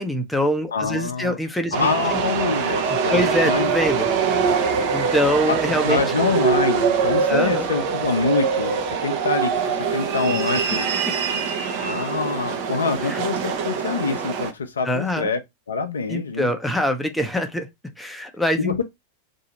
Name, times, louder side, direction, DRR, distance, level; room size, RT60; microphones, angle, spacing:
voice 1, 0.0-2.2 2.9-4.1 4.9-6.0 7.3-7.7 10.3-10.6 13.0-13.2 14.8-15.3 16.1-17.7 18.0-18.8, equal, 5° left, 0.6 m, -24 dB
voice 2, 0.7-1.4 1.7-3.7 5.5-10.9 11.8-15.4 15.7-16.5 18.6-18.8, left 4 dB, 70° left, 0.5 m, -25 dB
sound 1, 1.7-14.5, right 6 dB, 45° right, 0.7 m, -23 dB
2.7 x 2.6 x 4.1 m
figure-of-eight pair, 90°, 0 cm